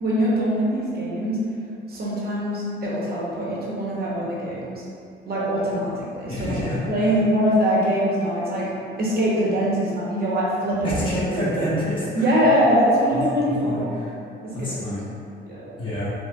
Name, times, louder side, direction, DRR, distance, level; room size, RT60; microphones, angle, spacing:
voice 1, 0.0-1.4 1.9-4.8 5.2-6.5 6.9-8.7 9.0-11.5 12.1-13.9 14.4-14.7 15.4-15.6, equal, 50° right, -6 dB, 0.8 m, -23 dB
voice 2, 6.3-7.1 10.8-12.3 13.1-14.1 14.5-15.0 15.8-16.1, left 1 dB, 25° left, -11 dB, 1.2 m, -28 dB
4.5 x 2.1 x 2.2 m, 2.5 s
cardioid pair, 90°, 20 cm